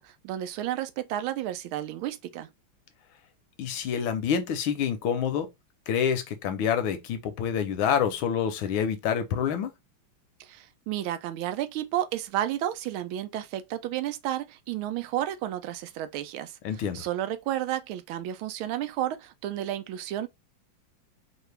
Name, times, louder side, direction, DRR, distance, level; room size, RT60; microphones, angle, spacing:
voice 1, 0.0-2.5 10.4-20.3, right 12 dB, 85° right, 1.4 m, -32 dB
voice 2, 3.6-5.5 5.9-9.7 16.6-17.0, left 8 dB, 80° left, 1.5 m, -27 dB
4.6 x 2.4 x 3.3 m
omnidirectional pair, 2.2 m